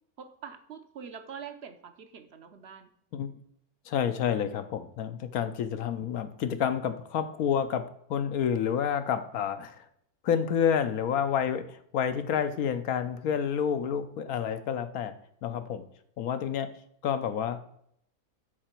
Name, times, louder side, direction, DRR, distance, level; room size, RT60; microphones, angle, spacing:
voice 1, 0.2-2.9, right 7 dB, 50° right, 9 dB, 0.9 m, -44 dB
voice 2, 3.9-7.8 8.1-9.8 10.2-15.1 15.4-15.8 16.2-16.7 17.0-17.6, left 8 dB, 70° left, 10 dB, 1.1 m, -29 dB
12.5 x 5.0 x 4.4 m, 0.69 s
omnidirectional pair, 1.6 m